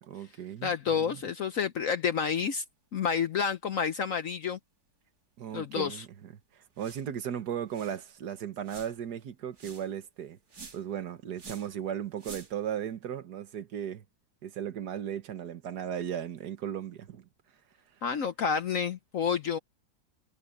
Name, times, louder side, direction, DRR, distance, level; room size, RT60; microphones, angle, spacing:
voice 1, 0.0-1.3 5.4-10.4 10.7-14.0 14.4-17.3, right 9 dB, 85° right, 1.8 m, -36 dB
voice 2, 0.6-2.6 2.9-4.6 5.5-6.0 18.0-19.6, left 6 dB, 60° left, 1.2 m, -29 dB
sound 1, 6.8-7.1 7.4-7.5 7.7-8.0 8.6-9.1 9.5-9.9 10.5-10.9 11.3-11.7 12.2-12.7, right 4 dB, 70° right, 3.3 m, -48 dB
omnidirectional pair, 1.7 m